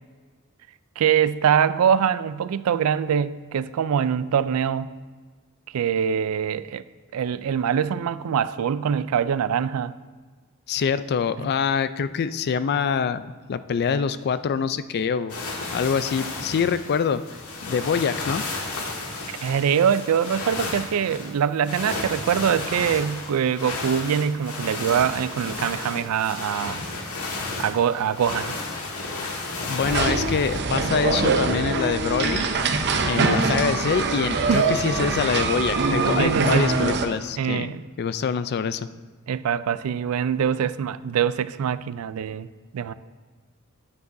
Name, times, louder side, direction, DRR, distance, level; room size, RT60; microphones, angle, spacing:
voice 1, 1.0-4.9 5.7-6.8 7.1-9.9 11.4-11.5 19.3-26.8 27.6-28.5 34.5-34.7 36.2-36.7 37.4-37.8 39.3-42.5 42.7-42.9, right 8 dB, 75° right, 16 dB, 0.3 m, -23 dB
voice 2, 10.7-15.4 15.7-17.2 17.6-18.4 29.6-32.5 33.1-37.7 38.0-38.9, left 6 dB, 50° left, 14 dB, 0.3 m, -25 dB
sound 1, 15.3-30.6, left 3 dB, 85° left, 1.6 m, -33 dB
sound 2, 29.8-37.1, right 3 dB, 50° right, 0.7 m, -23 dB
10.0 x 9.6 x 2.6 m, 1.5 s
head